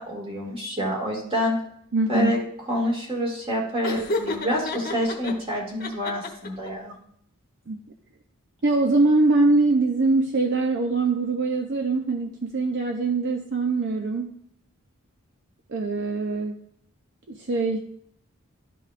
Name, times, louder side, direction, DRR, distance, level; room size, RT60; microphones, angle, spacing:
voice 1, 0.0-1.6 2.1-2.4 2.7-6.9, equal, 25° right, -2 dB, 2.1 m, -27 dB
voice 2, 1.9-2.3 7.7-7.8 8.6-14.3 15.7-16.6 17.3-17.8, right 3 dB, 55° right, 2 dB, 0.6 m, -23 dB
Laughter, 3.8-5.3 5.8-6.7, left 2 dB, 45° left, 1.0 m, -30 dB
12.0 x 5.3 x 2.5 m, 0.68 s
head